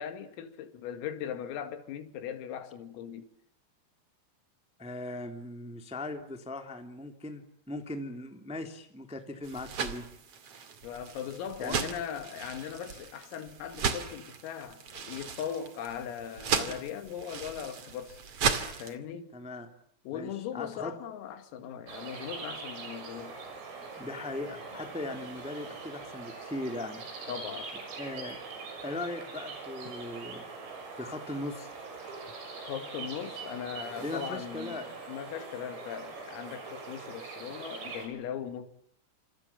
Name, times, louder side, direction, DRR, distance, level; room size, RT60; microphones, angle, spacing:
voice 1, 0.0-3.3 10.8-18.2 18.8-19.3 20.1-23.4 27.3-27.9 32.6-38.7, left 8 dB, 85° left, 5.0 m, -39 dB
voice 2, 4.8-10.0 11.6-11.8 19.3-19.7 20.1-20.9 24.0-27.0 28.0-28.4 28.8-30.4 30.9-31.7 34.0-34.9, left 2 dB, ahead, 1.7 m, -39 dB
sound 1, 9.4-18.9, right 6 dB, 45° right, 2.3 m, -36 dB
sound 2, 21.9-38.1, right 4 dB, 80° right, 9.2 m, -42 dB
27.5 x 27.5 x 7.2 m
omnidirectional pair, 5.9 m